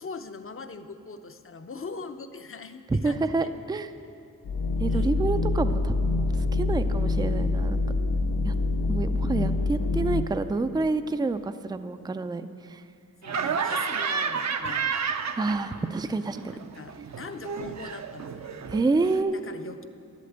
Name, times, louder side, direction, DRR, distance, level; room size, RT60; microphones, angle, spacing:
voice 1, 0.0-3.5 4.9-5.1 9.2-10.2 13.2-15.0 16.5-18.6 19.3-19.8, left 4 dB, 40° left, 8 dB, 0.7 m, -42 dB
voice 2, 2.9-3.9 4.8-7.8 8.4-8.6 8.9-12.8 15.4-16.4 18.7-19.5, right 3 dB, 15° right, 10 dB, 0.4 m, -28 dB
sound 1, 4.4-10.2, left 2 dB, 80° left, 0.7 m, -25 dB
Laughter, 13.2-16.0 16.3-19.2, right 6 dB, 55° right, 0.7 m, -31 dB
11.0 x 8.4 x 8.0 m, 2.5 s
wide cardioid pair, 90°, 33 cm